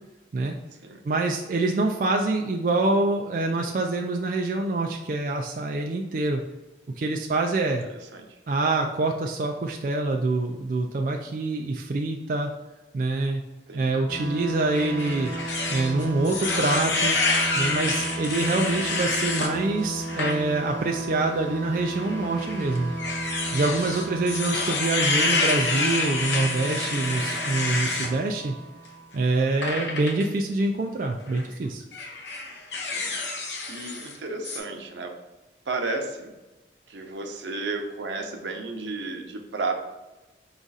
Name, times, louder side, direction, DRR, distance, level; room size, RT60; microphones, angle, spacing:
voice 1, 1.0-6.4 7.0-7.9 8.5-12.5 12.9-13.4 13.7-15.3 15.7-17.2 17.5-22.9 23.5-28.6 29.1-31.8, right 2 dB, 50° right, 2 dB, 0.3 m, -25 dB
voice 2, 7.9-8.4 13.7-14.0 29.5-29.9 32.7-33.4 33.7-35.1 35.7-36.3 36.9-39.7, right 3 dB, 85° right, 2 dB, 0.7 m, -33 dB
sound 1, 14.1-29.5, right 2 dB, 10° right, 1.3 m, -34 dB
sound 2, 14.7-19.5 20.0-20.4 20.8-20.9 22.0-28.1 29.6-30.2 31.2-31.4 31.9-34.2 34.4-34.6, left 3 dB, 80° left, 0.8 m, -28 dB
5.0 x 2.4 x 4.0 m, 1.1 s
head